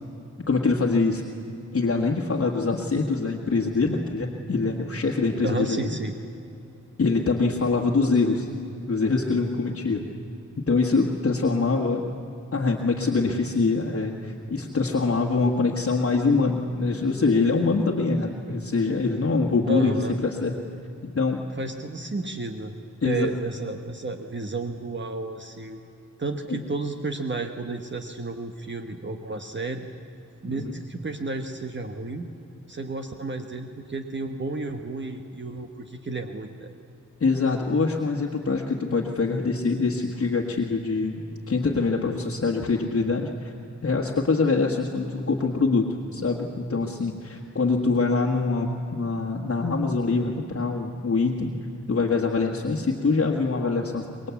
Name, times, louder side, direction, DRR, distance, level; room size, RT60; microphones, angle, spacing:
voice 1, 0.5-1.2 1.7-5.8 7.0-8.5 8.9-10.0 10.6-12.1 12.5-19.9 20.2-20.5 21.1-21.4 23.0-23.3 26.5-26.6 30.5-30.7 37.2-43.5 43.8-45.9 46.1-51.5 51.9-54.3, left 3 dB, 50° left, 0 dB, 1.6 m, -24 dB
voice 2, 5.4-6.1 19.7-20.2 21.6-22.8 23.0-25.8 26.2-29.9 30.4-32.3 32.7-36.7, right 3 dB, 40° right, 5 dB, 1.2 m, -32 dB
24.5 x 21.5 x 8.4 m, 2.7 s
wide cardioid pair, 155°, 30 cm